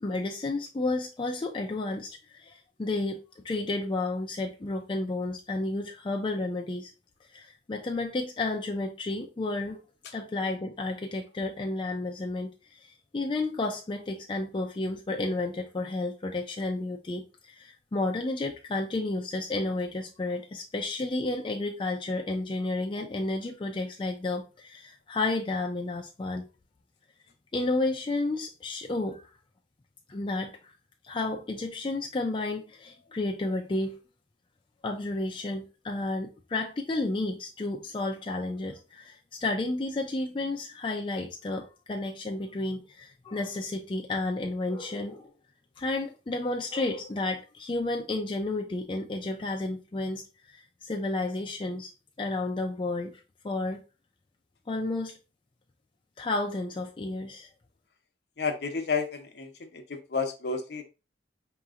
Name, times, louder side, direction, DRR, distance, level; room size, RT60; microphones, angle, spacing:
voice 1, 0.0-3.2 3.4-6.9 7.3-9.8 10.1-26.5 27.5-29.2 30.1-30.7 31.0-34.0 34.8-45.3 45.8-50.2 50.5-51.9 52.2-53.8 54.7-55.2 56.2-57.5, left 2 dB, 30° left, 0.4 m, -31 dB
voice 2, 58.4-59.8 60.1-60.8, left 5 dB, 65° left, 0.7 m, -31 dB
4.9 x 2.9 x 2.4 m
head